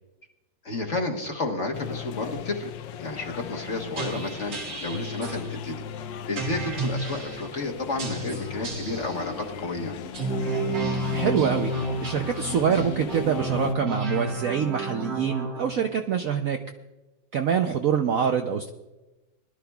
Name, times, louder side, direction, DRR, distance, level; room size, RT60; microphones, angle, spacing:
voice 1, 0.6-2.7 3.0-5.8 6.3-9.9, left 2 dB, 45° left, 2 dB, 1.4 m, -31 dB
sound 1, 1.7-13.7, left 9 dB, 85° left, 1.4 m, -38 dB
sound 2, 4.0-5.4 6.4-7.4 8.0-9.2 10.0-15.6, right 2 dB, 80° right, 2.8 m, -31 dB
voice 2, 11.1-11.7 12.0-16.6 17.3-18.7, right 7 dB, 65° right, 5 dB, 0.9 m, -25 dB
22.0 x 11.5 x 2.3 m, 1.0 s
omnidirectional pair, 2.0 m